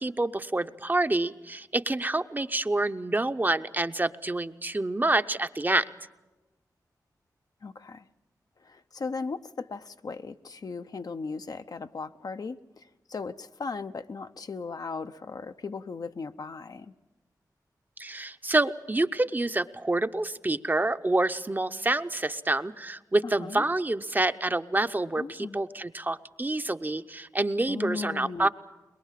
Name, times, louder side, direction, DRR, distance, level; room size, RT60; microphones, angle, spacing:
voice 1, 0.0-5.9 18.0-28.5, right 2 dB, 25° right, 0.7 m, -27 dB
voice 2, 7.6-8.0 8.6-16.9 23.2-23.6 25.2-25.6 27.7-28.5, left 4 dB, 60° left, 0.7 m, -37 dB
22.0 x 22.0 x 7.5 m
cardioid pair, 60°, 7 cm